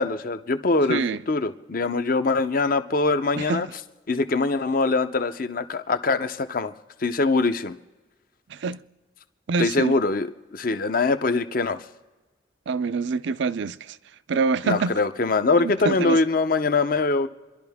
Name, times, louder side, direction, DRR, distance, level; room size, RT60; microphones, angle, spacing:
voice 1, 0.0-1.0 1.3-3.7 4.1-6.7 7.0-7.8 9.6-11.9 14.6-17.3, left 3 dB, 45° left, 0.7 m, -23 dB
voice 2, 0.9-1.2 3.4-3.7 8.5-8.8 9.5-9.9 12.7-14.0 14.3-15.0 15.6-16.2, right 4 dB, 65° right, 0.4 m, -26 dB
28.0 x 11.5 x 3.6 m
head